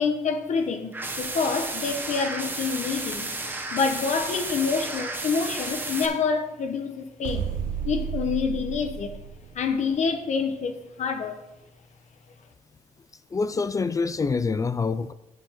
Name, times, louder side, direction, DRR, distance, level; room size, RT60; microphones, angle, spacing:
voice 1, 0.0-3.3 3.7-7.5 7.8-9.1 9.5-11.4, left 5 dB, 55° left, 1.0 m, -27 dB
sound 1, 0.9-6.1, right 2 dB, 15° right, 1.2 m, -32 dB
sound 2, 7.2-10.0, right 8 dB, 80° right, 1.1 m, -32 dB
voice 2, 13.3-15.1, left 4 dB, 25° left, 0.3 m, -26 dB
9.4 x 5.7 x 5.7 m
cardioid pair, 125°, 15 cm